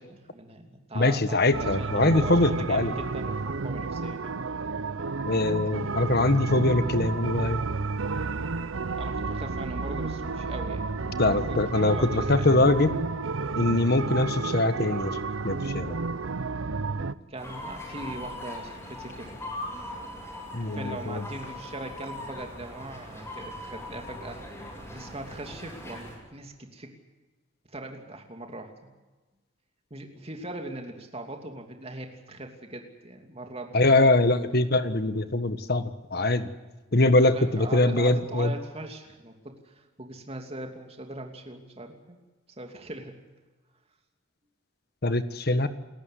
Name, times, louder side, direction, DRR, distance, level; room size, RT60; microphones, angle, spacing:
voice 1, 0.0-4.4 8.9-12.5 17.3-19.4 20.7-24.4 24.9-26.9 27.7-28.7 29.9-34.1 37.3-42.2 42.6-43.2, right 1 dB, 30° right, 4 dB, 2.9 m, -40 dB
voice 2, 0.9-2.9 5.2-7.6 11.2-12.9 13.6-15.2 15.4-16.0 20.5-21.2 33.7-36.5 36.9-38.5 45.0-45.7, left 2 dB, 55° left, 11 dB, 1.5 m, -23 dB
sound 1, 1.5-17.1, right 4 dB, 90° right, 0.8 m, -31 dB
sound 2, 17.4-26.2, left 1 dB, 15° left, 8.0 m, -40 dB
28.5 x 14.0 x 8.3 m, 1.2 s
head